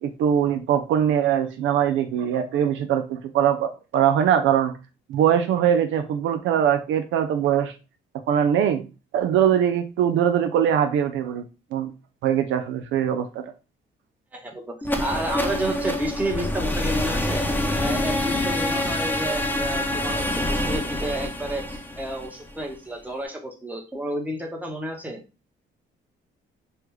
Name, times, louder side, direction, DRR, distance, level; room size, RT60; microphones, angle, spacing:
voice 1, 0.0-4.7 5.1-7.7 8.3-8.8 9.1-11.4 11.7-11.9 12.2-13.4, right 9 dB, 80° right, 0.4 m, -22 dB
voice 2, 14.3-17.5 17.8-25.2, right 1 dB, 10° right, 0.9 m, -31 dB
sound 1, 14.8-22.7, left 1 dB, 10° left, 0.4 m, -26 dB
3.3 x 2.3 x 3.0 m
cardioid pair, 90°, 20 cm